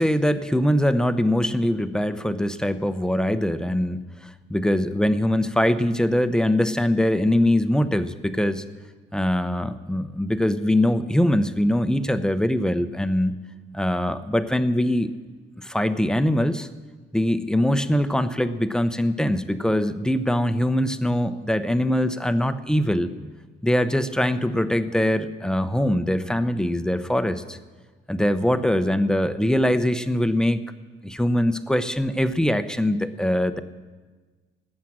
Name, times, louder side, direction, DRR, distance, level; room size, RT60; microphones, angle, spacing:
voice 1, 0.0-8.6 9.1-13.3 13.7-15.1 15.6-16.7 17.1-23.1 23.6-27.6 28.1-30.6 31.0-33.6, left 1 dB, 5° left, 11 dB, 0.7 m, -22 dB
18.5 x 7.4 x 7.4 m, 1.4 s
cardioid pair, 90°, 20 cm